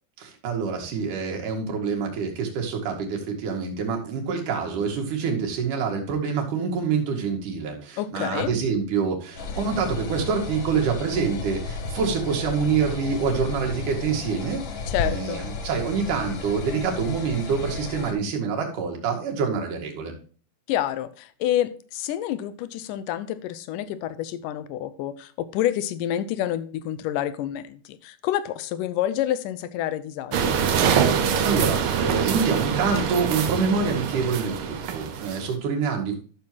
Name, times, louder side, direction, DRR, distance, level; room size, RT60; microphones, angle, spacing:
voice 1, 0.2-14.6 15.0-20.1 31.0-36.2, right 5 dB, 70° right, 1 dB, 3.6 m, -26 dB
voice 2, 8.0-8.5 14.9-15.4 20.7-30.6, left 12 dB, 75° left, 13 dB, 2.3 m, -28 dB
sound 1, 8.4-9.5 10.2-11.2 11.9-13.0, equal, 50° right, 2.2 m, -45 dB
sound 2, 9.4-18.1, left 4 dB, 55° left, 1.4 m, -33 dB
sound 3, 30.3-35.5, right 7 dB, 85° right, 1.2 m, -24 dB
12.5 x 6.9 x 3.0 m, 0.39 s
omnidirectional pair, 3.9 m